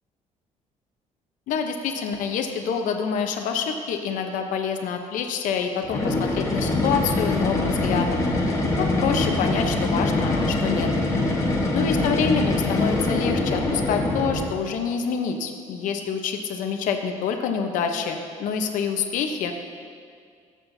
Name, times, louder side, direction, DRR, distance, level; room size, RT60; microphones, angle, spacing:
voice 1, 1.5-8.3 8.8-10.9 11.7-19.5, left 6 dB, 75° left, 5 dB, 0.8 m, -27 dB
sound 1, 5.8-14.6, left 2 dB, 25° left, 1.2 m, -24 dB
14.5 x 7.6 x 2.7 m, 2.2 s
cardioid pair, 140°, 13 cm